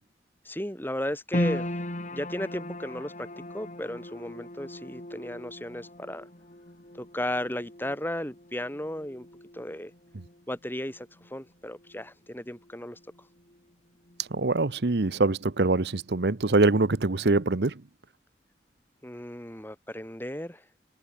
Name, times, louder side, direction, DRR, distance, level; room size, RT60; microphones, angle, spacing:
voice 1, 0.4-1.7 2.1-3.3 3.5-6.3 6.9-9.3 9.5-9.9 10.5-13.0 19.0-20.6, left 1 dB, 10° left, 6.1 m, -35 dB
sound 1, 1.3-13.7 14.0-14.9 15.4-15.5, left 1 dB, 45° left, 3.3 m, -38 dB
voice 2, 14.3-17.7, right 3 dB, 70° right, 0.9 m, -24 dB
head